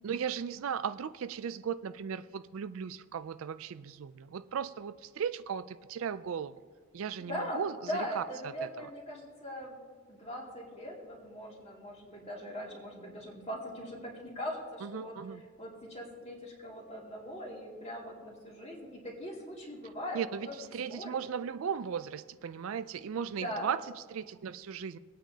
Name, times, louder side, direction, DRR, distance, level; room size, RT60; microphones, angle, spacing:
voice 1, 0.0-6.6 6.9-8.9 14.8-15.4 20.1-23.8 24.1-25.0, right 7 dB, 65° right, 13 dB, 0.4 m, -37 dB
voice 2, 7.3-7.6 7.9-9.8 10.1-14.0 14.3-15.2 15.6-21.2 23.1-23.7, equal, 30° left, -3 dB, 2.4 m, -40 dB
23.0 x 8.9 x 2.8 m, 1.5 s
head